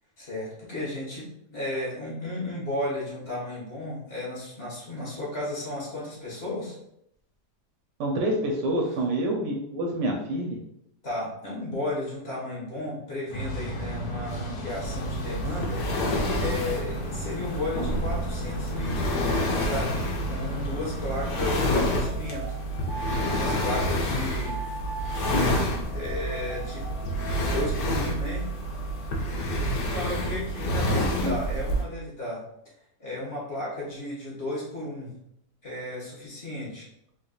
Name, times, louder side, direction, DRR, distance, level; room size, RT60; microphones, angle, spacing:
voice 1, 0.2-6.8 11.0-22.5 23.0-24.7 25.9-27.0 27.4-28.5 29.9-32.4 33.0-35.2 35.6-36.9, left 1 dB, 35° left, -6 dB, 1.7 m, -34 dB
voice 2, 8.0-10.6 30.8-31.4, right 1 dB, 85° right, 0 dB, 1.3 m, -27 dB
sound 1, 13.3-21.6, equal, 70° left, 1.2 m, -34 dB
sound 2, 14.8-31.8, equal, 90° left, 1.3 m, -28 dB
sound 3, 22.0-23.9 24.4-27.8, right 3 dB, 30° right, 0.5 m, -40 dB
3.9 x 3.4 x 2.3 m, 0.76 s
omnidirectional pair, 1.8 m